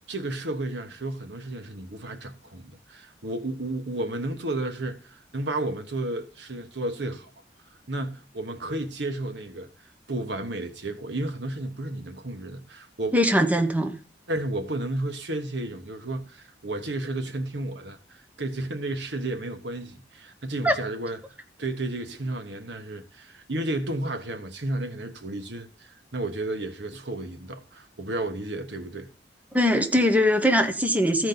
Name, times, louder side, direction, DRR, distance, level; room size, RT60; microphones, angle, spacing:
voice 1, 0.1-7.3 7.9-9.7 10.1-13.2 14.3-21.2 21.6-29.1, right 2 dB, 80° right, 1.3 m, -32 dB
voice 2, 13.1-14.0 20.6-20.8 29.5-31.3, equal, 10° right, 0.9 m, -21 dB
15.0 x 5.1 x 3.9 m
head